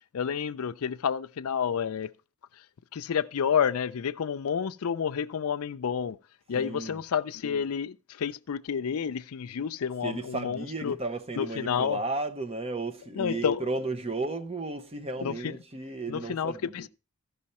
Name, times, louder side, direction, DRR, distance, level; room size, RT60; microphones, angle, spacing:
voice 1, 0.1-2.1 2.9-6.2 6.5-11.0 11.4-12.0 13.1-13.7 15.2-15.6 16.1-16.9, left 7 dB, 80° left, 0.4 m, -30 dB
voice 2, 6.5-7.0 10.0-16.9, right 2 dB, 25° right, 0.7 m, -34 dB
14.0 x 5.5 x 4.2 m
head